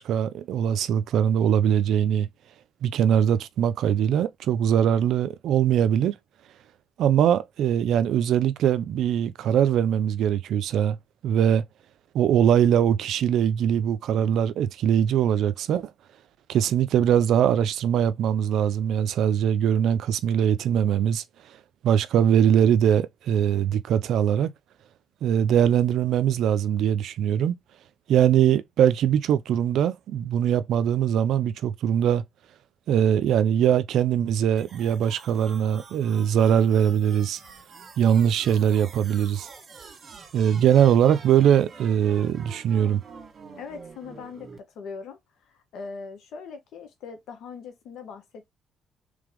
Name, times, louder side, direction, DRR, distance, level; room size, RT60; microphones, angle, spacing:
voice 1, 0.0-2.3 2.8-6.1 7.0-11.0 11.2-11.6 12.1-15.9 16.5-21.2 21.8-24.5 25.2-27.6 28.1-32.2 32.9-37.4 38.0-39.5 40.3-43.0, right 9 dB, 80° right, 0.5 m, -22 dB
sound 1, 34.6-44.6, right 5 dB, 50° right, 1.6 m, -47 dB
voice 2, 43.6-45.2 45.4-48.5, left 5 dB, 80° left, 1.2 m, -40 dB
3.3 x 3.3 x 3.7 m
cardioid pair, 90°, 0 cm